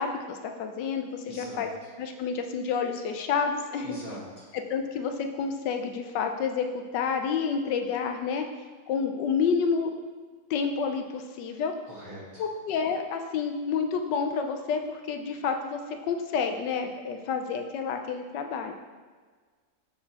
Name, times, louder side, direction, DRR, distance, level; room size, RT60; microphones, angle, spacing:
voice 1, 0.0-1.7 2.0-4.0 4.5-8.4 8.9-9.9 10.5-11.7 12.4-18.7, left 6 dB, 90° left, 5 dB, 1.3 m, -29 dB
voice 2, 1.3-1.7 3.8-4.5 11.9-12.4, equal, 30° right, -5 dB, 1.2 m, -42 dB
7.5 x 6.6 x 2.9 m, 1.5 s
omnidirectional pair, 1.8 m